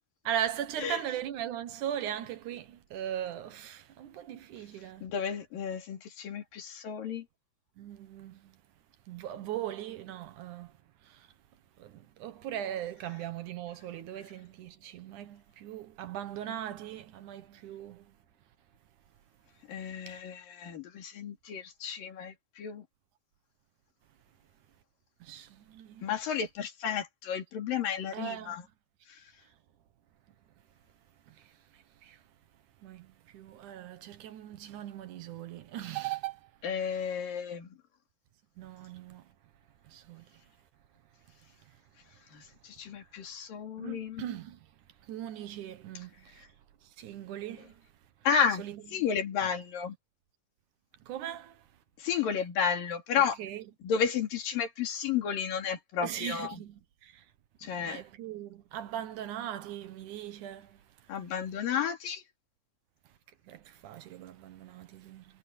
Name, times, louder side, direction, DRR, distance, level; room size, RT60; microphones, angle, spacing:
voice 1, 0.3-5.1 7.8-8.4 9.1-10.7 11.8-18.0 20.1-20.2 25.2-26.0 28.1-28.6 32.0-32.2 32.8-33.1 33.3-36.4 38.6-39.2 39.9-40.2 43.8-44.6 45.1-46.4 47.0-47.7 48.5-48.8 49.4-49.5 51.1-51.5 53.4-53.7 56.0-57.1 57.6-60.7 63.5-65.2, right 11 dB, 70° right, 2.5 m, -39 dB
voice 2, 5.0-7.2 19.7-22.8 26.0-28.6 36.6-37.7 42.3-42.4 42.8-44.2 48.3-48.6 48.9-49.9 52.0-53.4 53.8-56.5 57.6-58.0 61.1-62.2, left 7 dB, 85° left, 4.4 m, -32 dB
omnidirectional pair, 3.9 m